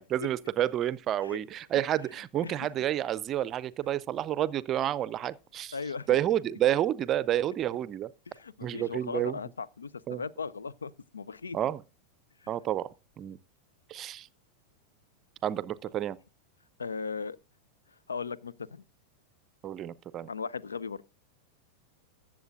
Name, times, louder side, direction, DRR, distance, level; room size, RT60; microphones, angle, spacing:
voice 1, 0.0-5.8 6.1-8.1 8.6-9.4 10.1-10.2 11.5-11.8 12.5-12.9 13.2-13.4 13.9-14.3 15.4-16.2 19.6-20.3, right 12 dB, 30° right, 0.5 m, -29 dB
voice 2, 5.7-6.1 8.3-11.6 12.4-12.5 16.8-17.4 18.1-18.8 20.3-21.0, left 5 dB, 75° left, 0.5 m, -37 dB
21.5 x 7.5 x 2.5 m
figure-of-eight pair, 90°, 0 cm